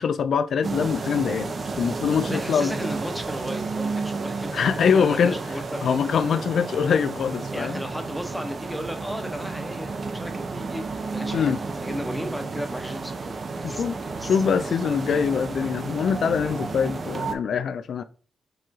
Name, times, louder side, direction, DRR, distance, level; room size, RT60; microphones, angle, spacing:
voice 1, 0.0-2.7 4.5-5.4 5.8-7.8 11.3-11.6 13.6-14.0 14.2-18.0, left 7 dB, 75° left, 0.3 m, -23 dB
sound 1, 0.6-17.3, right 4 dB, 50° right, 0.6 m, -32 dB
voice 2, 2.2-4.6 4.9-5.8 7.5-10.8 11.1-13.8 14.2-14.8, equal, ahead, 1.0 m, -35 dB
4.8 x 3.0 x 3.6 m
cardioid pair, 70°, 0 cm